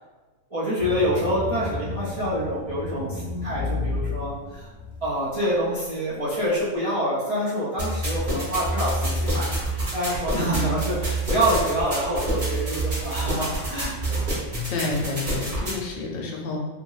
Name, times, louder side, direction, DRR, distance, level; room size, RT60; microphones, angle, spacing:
voice 1, 0.5-4.7 5.0-14.2, equal, 60° right, -9 dB, 0.3 m, -26 dB
sound 1, 0.8-5.4, left 3 dB, 40° left, 0.7 m, -32 dB
sound 2, 7.8-15.8, right 1 dB, 40° right, 0.9 m, -27 dB
voice 2, 10.3-10.8 14.7-16.6, left 3 dB, 80° left, -1 dB, 1.0 m, -29 dB
2.8 x 2.7 x 2.3 m, 1.3 s
omnidirectional pair, 1.4 m